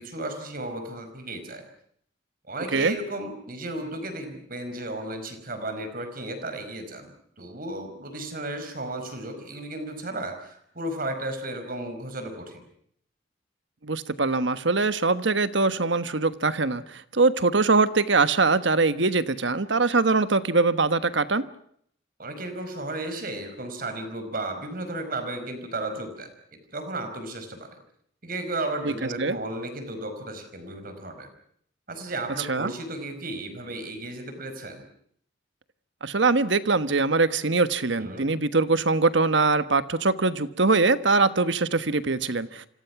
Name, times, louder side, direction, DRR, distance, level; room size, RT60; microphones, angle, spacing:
voice 1, 0.0-1.6 2.5-12.6 22.2-26.3 26.7-27.7 28.2-31.3 31.9-34.9 38.0-38.3, right 2 dB, 50° right, 7 dB, 5.2 m, -34 dB
voice 2, 13.8-21.4 28.8-29.4 32.5-32.7 36.0-42.7, right 3 dB, 70° right, 12 dB, 1.3 m, -23 dB
28.0 x 26.0 x 6.0 m, 0.66 s
head